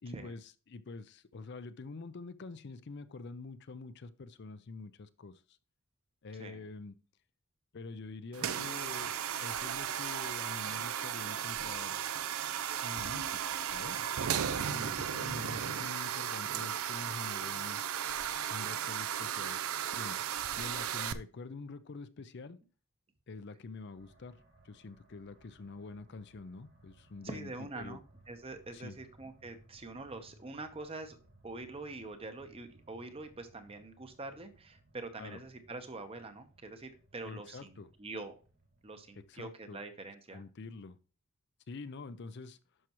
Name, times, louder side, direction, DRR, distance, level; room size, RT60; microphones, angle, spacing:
voice 1, 0.0-0.4 0.7-5.6 6.2-7.0 7.7-12.1 12.8-14.0 14.5-17.8 18.5-22.6 23.3-24.4 24.6-28.0 28.7-29.0 35.2-35.4 37.2-37.9 39.2-39.8 40.3-41.0 41.7-42.6, left 3 dB, 55° left, 0.5 m, -46 dB
sound 1, 8.3-21.1, right 9 dB, 85° right, 0.5 m, -35 dB
sound 2, 24.0-39.3, right 1 dB, 60° right, 2.6 m, -63 dB
voice 2, 27.2-31.2 31.4-38.4 38.8-40.4, right 2 dB, 25° right, 0.8 m, -45 dB
11.0 x 5.9 x 3.0 m
head